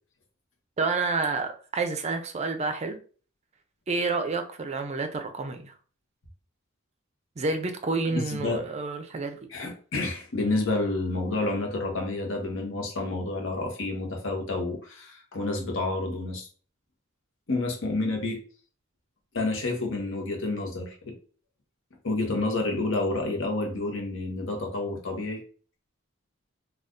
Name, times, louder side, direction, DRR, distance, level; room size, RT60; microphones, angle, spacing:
voice 1, 0.8-3.0 3.9-5.7 7.4-9.4, right 3 dB, 30° right, 7 dB, 0.4 m, -29 dB
voice 2, 8.1-8.7 9.5-16.5 17.5-18.4 19.3-21.1 22.0-25.4, left 2 dB, 65° left, 2 dB, 0.9 m, -29 dB
2.5 x 2.3 x 3.5 m, 0.41 s
head